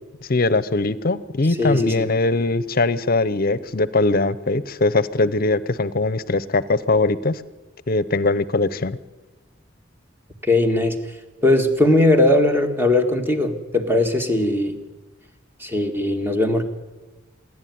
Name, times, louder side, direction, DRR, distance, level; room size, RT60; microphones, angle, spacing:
voice 1, 0.2-7.4 7.9-9.0, left 2 dB, 50° left, 17 dB, 0.8 m, -21 dB
voice 2, 1.6-2.1 10.4-11.0 11.4-14.8 15.6-16.6, left 1 dB, 10° right, 5 dB, 1.8 m, -19 dB
26.5 x 11.0 x 9.4 m, 1.2 s
head